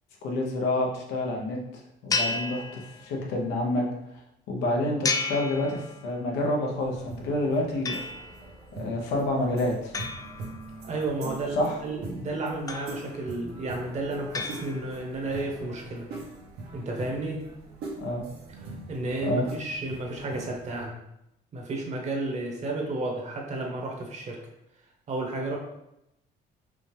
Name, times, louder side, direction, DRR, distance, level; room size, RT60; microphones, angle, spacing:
voice 1, 0.2-3.9 4.5-8.0 8.7-9.9 11.5-11.8 18.0-18.3 19.2-19.5, left 1 dB, 90° left, 0 dB, 1.0 m, -28 dB
sound 1, 2.1-3.3 5.0-6.3 7.9-8.6 9.9-11.1 12.7-13.4 14.3-15.2, left 3 dB, 20° left, 0.4 m, -33 dB
sound 2, 6.8-20.9, right 3 dB, 75° right, 1.1 m, -43 dB
voice 2, 10.8-16.1 16.7-17.4 18.9-21.0 21.5-24.4 25.1-25.6, right 2 dB, 40° right, 0 dB, 1.1 m, -32 dB
4.9 x 2.4 x 3.4 m, 0.83 s
cardioid pair, 110°, 17 cm